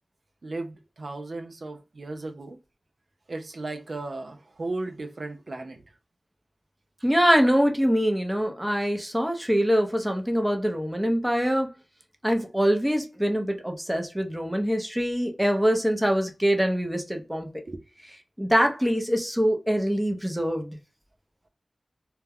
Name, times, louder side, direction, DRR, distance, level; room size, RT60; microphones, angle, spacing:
voice 1, 0.4-2.6 3.3-5.8 17.7-17.8, right 2 dB, 70° right, 0.3 m, -35 dB
voice 2, 7.0-11.7 12.2-17.5 18.4-20.8, equal, 10° right, 0.6 m, -24 dB
2.2 x 2.2 x 3.3 m
wide cardioid pair, 55°, 0 cm